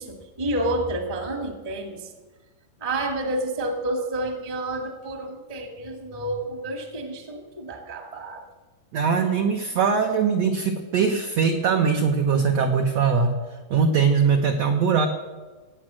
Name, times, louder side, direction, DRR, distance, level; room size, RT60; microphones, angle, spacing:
voice 1, 0.0-2.1 2.8-8.4 12.3-12.4, right 1 dB, 30° right, 4 dB, 0.7 m, -29 dB
voice 2, 8.9-13.3 13.7-15.1, right 5 dB, 85° right, 3 dB, 1.4 m, -21 dB
17.0 x 8.9 x 7.6 m, 1.3 s
omnidirectional pair, 4.5 m